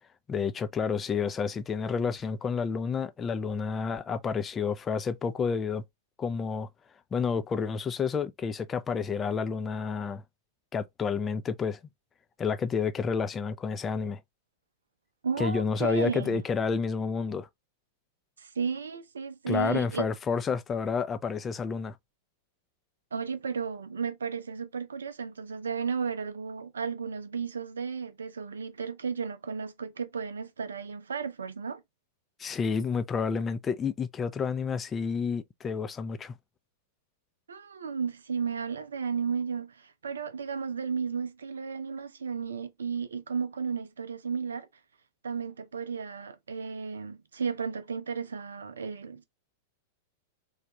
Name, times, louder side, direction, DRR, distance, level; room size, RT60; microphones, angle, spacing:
voice 1, 0.3-5.8 6.2-6.7 7.1-10.2 10.7-11.8 12.4-14.2 15.4-17.5 19.5-22.0 32.4-36.3, left 5 dB, 20° left, 0.4 m, -30 dB
voice 2, 15.2-16.4 18.4-20.1 23.1-31.8 37.5-44.7 45.2-49.2, right 6 dB, 75° right, 0.5 m, -34 dB
3.3 x 2.4 x 2.9 m
figure-of-eight pair, 95°, 0 cm